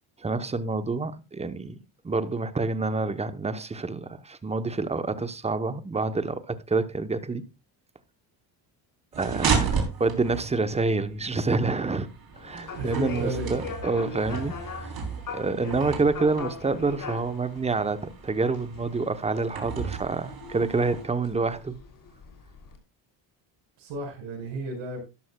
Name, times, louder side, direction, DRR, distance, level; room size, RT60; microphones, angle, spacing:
voice 1, 0.2-1.8 2.0-7.4 9.1-12.1 12.4-14.6 15.3-21.7, right 3 dB, 15° right, 0.8 m, -27 dB
sound 1, 9.1-21.0, right 5 dB, 50° right, 3.4 m, -34 dB
sound 2, 12.3-22.8, left 5 dB, 45° left, 2.9 m, -41 dB
voice 2, 12.7-13.5 15.3-15.4 23.8-25.0, right 1 dB, 75° right, 5.0 m, -33 dB
12.5 x 11.0 x 2.2 m
cardioid pair, 90°, 46 cm